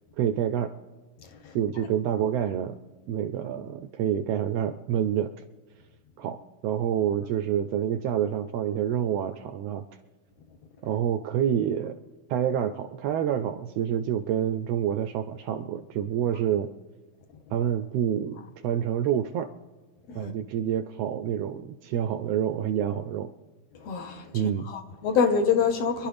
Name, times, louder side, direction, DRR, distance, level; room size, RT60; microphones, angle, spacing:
voice 1, 0.2-0.7 1.5-2.8 3.1-5.3 6.2-9.9 10.8-12.0 12.3-16.7 17.5-19.5 20.1-23.3 24.3-24.7, right 9 dB, 80° right, 1.5 m, -27 dB
voice 2, 1.2-1.6 20.1-20.3 23.7-26.1, left 6 dB, 65° left, 1.9 m, -26 dB
26.0 x 11.5 x 3.4 m
omnidirectional pair, 3.3 m